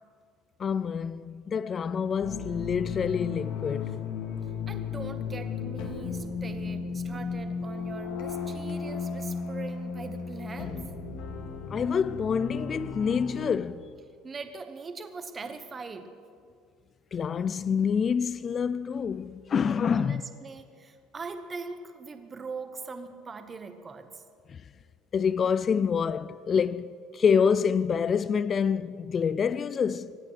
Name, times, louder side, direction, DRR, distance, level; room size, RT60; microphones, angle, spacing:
voice 1, 0.6-4.0 11.7-13.9 17.1-20.2 24.5-24.6 25.1-30.2, left 6 dB, 30° left, 0.3 m, -27 dB
sound 1, 2.2-13.5, left 5 dB, 70° left, 2.3 m, -35 dB
voice 2, 4.7-10.8 14.2-16.1 19.9-24.2, right 4 dB, 20° right, 1.2 m, -41 dB
25.0 x 9.0 x 5.9 m
cardioid pair, 150°, 0 cm